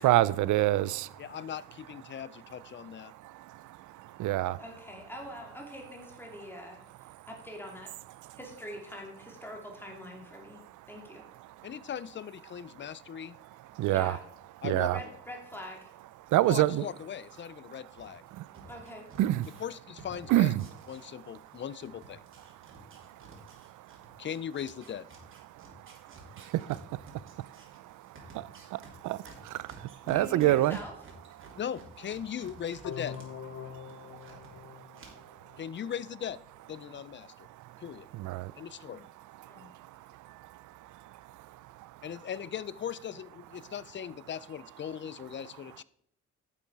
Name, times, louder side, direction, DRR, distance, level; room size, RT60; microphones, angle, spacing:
voice 1, 0.0-1.3 2.8-4.6 7.0-7.3 8.2-8.4 10.8-10.9 11.4-11.7 13.6-14.2 14.6-15.0 16.2-16.9 17.7-17.8 18.3-18.7 19.2-19.6 20.3-20.8 21.4-21.6 22.5-24.3 25.5-30.8 31.4-31.6 33.6-35.6 37.4-38.9 39.4-42.1, right 15 dB, 75° right, 0.5 m, -31 dB
voice 2, 1.2-3.1 11.6-13.4 14.6-15.1 16.5-18.2 19.6-20.5 20.9-22.2 24.2-25.1 31.6-33.2 35.6-36.4 36.7-37.5 37.8-38.1 38.6-39.0 42.0-45.8, left 9 dB, 40° left, 0.4 m, -39 dB
voice 3, 4.6-7.9 8.3-11.3 13.9-14.2 14.9-15.9 18.7-19.1 30.0-30.9 38.9-39.0 39.4-39.7, left 1 dB, 5° left, 2.4 m, -44 dB
sound 1, 17.9-21.5 21.8-33.3 33.6-34.5 34.9-35.1, right 3 dB, 40° right, 3.2 m, -53 dB
sound 2, 32.8-35.8, left 8 dB, 60° left, 0.8 m, -44 dB
10.0 x 7.1 x 4.7 m
cardioid pair, 90°, 30 cm